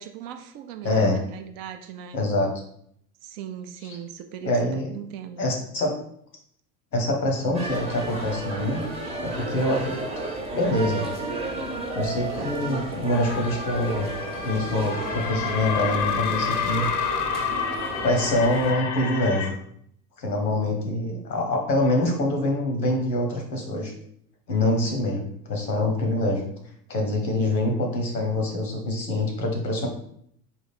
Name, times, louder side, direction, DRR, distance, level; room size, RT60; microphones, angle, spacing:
voice 1, 0.0-2.2 3.2-5.4, right 9 dB, 40° right, 7 dB, 0.4 m, -39 dB
voice 2, 0.8-1.2 2.1-2.5 3.8-4.0 4.4-4.9 5.4-5.9 6.9-8.8 9.2-10.0 10.5-11.1 11.9-14.1 14.4-16.9 18.0-19.6 20.2-23.9 24.5-26.4 26.9-29.9, left 1 dB, 85° left, 1 dB, 1.0 m, -25 dB
sound 1, 7.5-18.7, right 2 dB, 15° right, 0.7 m, -32 dB
sound 2, 13.1-19.5, left 7 dB, 45° left, 0.6 m, -30 dB
3.6 x 2.5 x 4.2 m, 0.68 s
figure-of-eight pair, 75°, 49 cm